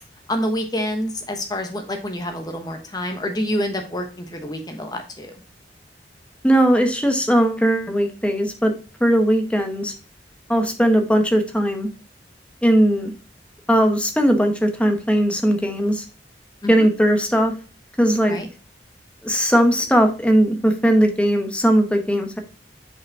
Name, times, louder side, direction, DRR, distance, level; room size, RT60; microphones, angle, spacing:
voice 1, 0.3-5.3 16.6-16.9 18.3-18.5, equal, 25° left, 4 dB, 1.2 m, -27 dB
voice 2, 6.4-8.7 9.0-9.9 10.5-11.9 12.6-13.1 13.7-16.0 16.7-17.5 18.0-18.4 19.2-22.4, equal, 5° left, 5 dB, 1.0 m, -18 dB
5.9 x 5.1 x 3.5 m, 0.34 s
head